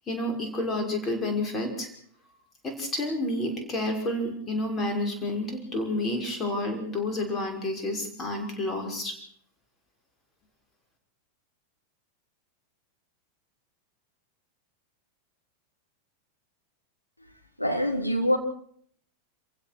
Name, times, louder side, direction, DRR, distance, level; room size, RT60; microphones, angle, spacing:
voice 1, 0.1-1.9 2.6-9.2, left 1 dB, 20° left, 3 dB, 6.1 m, -30 dB
voice 2, 17.6-18.4, equal, 90° left, 2 dB, 3.4 m, -24 dB
27.0 x 16.0 x 6.3 m, 0.62 s
figure-of-eight pair, 90°, 0 cm